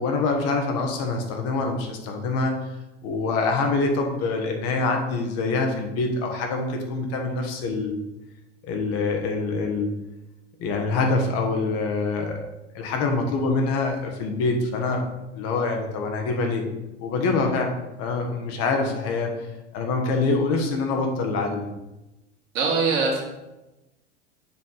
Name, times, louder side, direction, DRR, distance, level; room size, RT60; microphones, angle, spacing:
voice 1, 0.0-2.6 3.0-8.0 8.6-9.9 10.6-12.4 12.7-15.0 15.3-16.6 17.0-17.7 18.0-19.3 19.7-21.7, left 3 dB, 45° left, 3 dB, 1.3 m, -25 dB
voice 2, 22.5-23.2, right 4 dB, 50° right, -1 dB, 2.0 m, -22 dB
7.3 x 3.9 x 3.9 m, 0.99 s
figure-of-eight pair, 85°, 35 cm